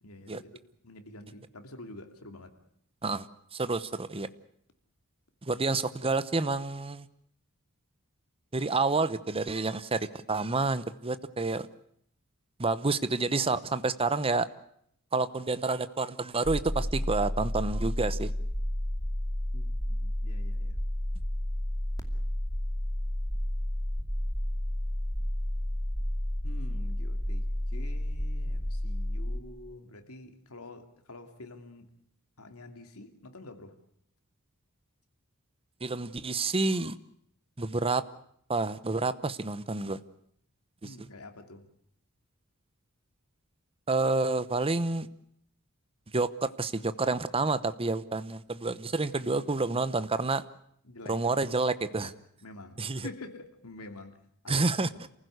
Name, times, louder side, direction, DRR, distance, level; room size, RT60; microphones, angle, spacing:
voice 1, 0.0-2.6 19.5-20.8 26.4-31.9 32.4-33.8 40.8-41.7 50.8-51.3 52.4-55.0, left 2 dB, 80° left, 2.8 m, -47 dB
voice 2, 3.5-4.3 5.4-7.1 8.5-11.7 12.6-14.5 15.1-18.3 35.8-37.0 37.6-38.0 38.5-40.0 40.8-40.9 43.9-45.1 46.1-50.4 51.1-52.1 52.8-53.1 54.5-55.1, right 3 dB, 25° right, 0.9 m, -29 dB
sound 1, 16.4-29.4, left 1 dB, 15° left, 2.5 m, -31 dB
28.5 x 15.5 x 8.1 m
head